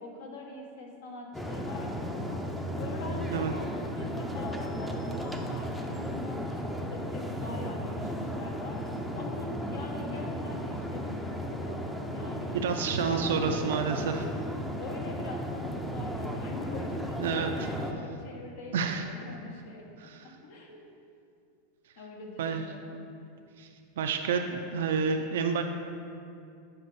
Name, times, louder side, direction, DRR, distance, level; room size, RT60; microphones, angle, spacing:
voice 1, 0.0-2.4 2.7-3.7 4.0-8.9 9.1-14.2 14.8-19.9 20.2-20.9 22.0-23.0, left 3 dB, 75° left, 0 dB, 1.3 m, -43 dB
sound 1, 1.3-17.9, equal, ahead, 0.5 m, -35 dB
voice 2, 12.5-14.2 17.2-17.5 18.7-19.1 20.0-20.2 22.4-22.6 23.6-23.7 24.0-25.6, right 6 dB, 90° right, 5 dB, 0.4 m, -29 dB
7.8 x 5.3 x 4.2 m, 2.5 s
supercardioid pair, 150°, 0 cm